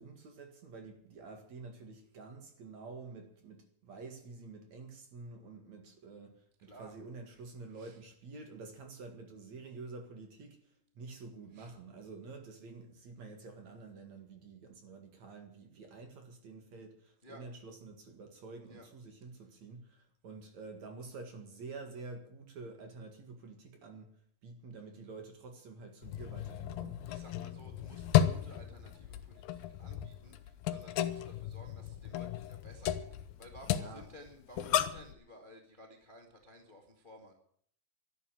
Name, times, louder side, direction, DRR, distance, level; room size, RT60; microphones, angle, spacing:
voice 1, 0.0-24.1 24.4-27.0 33.7-34.1, right 3 dB, 50° right, 2.8 m, -49 dB
voice 2, 6.6-6.9 7.7-8.0 11.5-11.7 17.2-17.4 18.7-18.9 27.1-37.3, equal, 20° left, 1.3 m, -55 dB
sound 1, 26.0-35.1, left 11 dB, 75° left, 2.5 m, -34 dB
12.5 x 11.5 x 9.0 m
omnidirectional pair, 4.6 m